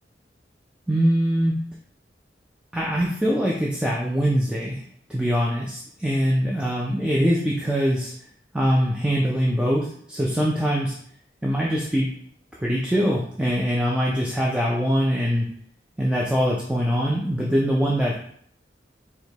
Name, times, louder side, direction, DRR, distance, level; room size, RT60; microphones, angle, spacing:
voice 1, 0.9-1.6 2.7-4.8 5.1-8.1 8.5-11.0 11.4-12.1 12.6-15.5 16.0-18.1, equal, 5° right, -4 dB, 0.3 m, -23 dB
4.5 x 2.2 x 2.8 m, 0.63 s
head